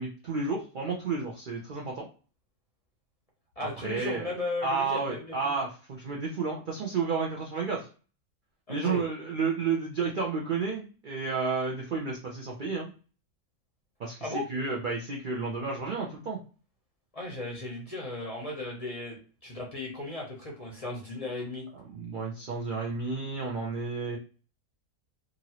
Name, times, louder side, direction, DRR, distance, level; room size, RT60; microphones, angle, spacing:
voice 1, 0.0-2.1 3.8-4.3 4.6-7.9 8.7-12.9 14.0-16.4 21.7-24.2, right 4 dB, 65° right, -1 dB, 0.4 m, -31 dB
voice 2, 3.6-5.6 8.7-9.0 14.2-14.4 17.1-19.2 19.4-21.7, left 2 dB, 35° left, -2 dB, 0.6 m, -36 dB
2.9 x 2.5 x 2.8 m, 0.37 s
omnidirectional pair, 1.5 m